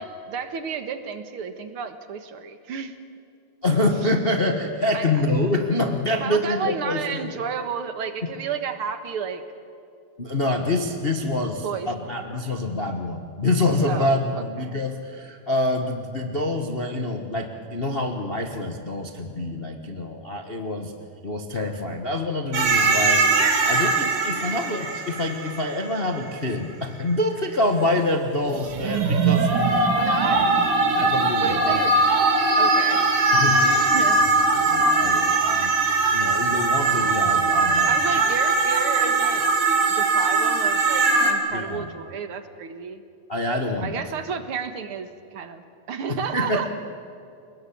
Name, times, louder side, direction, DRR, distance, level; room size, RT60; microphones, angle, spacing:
voice 1, 0.0-2.9 4.9-5.1 6.2-9.4 11.6-11.9 12.3-12.5 13.9-14.1 14.4-14.8 29.9-30.4 31.4-31.9 32.6-33.1 33.5-34.2 35.5-35.7 37.9-39.5 39.9-43.0 43.8-46.7, right 6 dB, 55° right, 9 dB, 2.0 m, -32 dB
voice 2, 3.6-7.3 10.2-20.9 21.2-23.3 23.6-30.5 31.0-31.8 33.3-33.7 34.5-38.2 41.5-41.9 43.3-44.1 46.1-46.7, left 2 dB, 55° left, 4 dB, 0.6 m, -26 dB
sound 1, 22.5-26.2 28.5-41.3, right 3 dB, 85° right, 4.3 m, -21 dB
29.5 x 19.5 x 8.6 m, 2.6 s
omnidirectional pair, 3.5 m